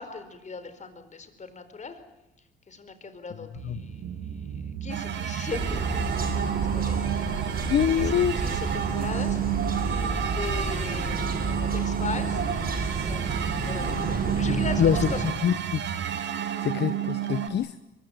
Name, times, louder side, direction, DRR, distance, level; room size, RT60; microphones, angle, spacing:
voice 1, 0.0-2.0 2.7-7.1 7.9-9.5 9.9-12.4 12.8-13.3 13.6-15.2, left 4 dB, 35° left, 10 dB, 4.4 m, -39 dB
sound 1, 3.6-16.2, right 8 dB, 90° right, 1.9 m, -36 dB
sound 2, 4.9-17.5, right 10 dB, 65° right, 2.7 m, -31 dB
sound 3, 5.5-15.2, right 3 dB, 50° right, 7.0 m, -31 dB
voice 2, 7.7-8.4 14.1-15.1 15.4-15.8 16.6-17.7, left 9 dB, 60° left, 14 dB, 0.9 m, -25 dB
23.0 x 22.5 x 9.2 m, 0.95 s
cardioid pair, 90°, 20 cm